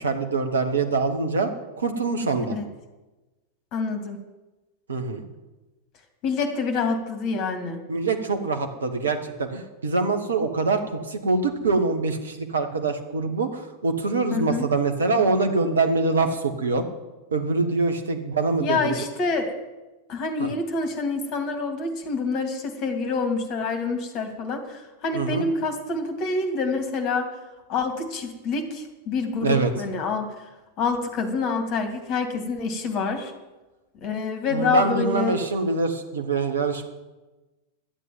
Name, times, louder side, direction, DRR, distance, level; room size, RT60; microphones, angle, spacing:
voice 1, 0.0-1.5 1.8-2.6 4.9-5.2 7.9-16.8 17.3-19.0 20.4-20.5 25.1-25.4 29.4-29.7 34.5-36.8, right 3 dB, 70° right, 7 dB, 1.5 m, -24 dB
voice 2, 3.7-4.2 6.2-7.8 14.3-14.7 18.6-19.5 20.1-27.3 27.7-30.3 30.8-33.3 34.0-35.3, left 4 dB, 40° left, 7 dB, 2.4 m, -27 dB
12.0 x 8.4 x 9.1 m, 1.1 s
figure-of-eight pair, 90°, 0 cm